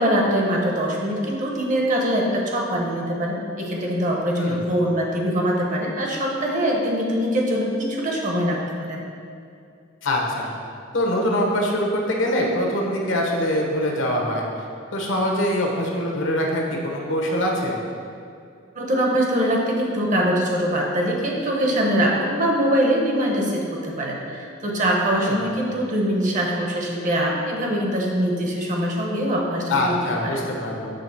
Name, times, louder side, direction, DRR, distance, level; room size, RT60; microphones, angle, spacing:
voice 1, 0.0-9.0 18.7-30.0 30.2-30.5, equal, 40° right, -1 dB, 1.0 m, -23 dB
voice 2, 10.0-10.5 10.9-14.5 14.9-17.8 25.2-25.4 29.7-30.9, left 1 dB, 70° left, -1 dB, 1.1 m, -23 dB
6.7 x 3.4 x 5.8 m, 2.4 s
head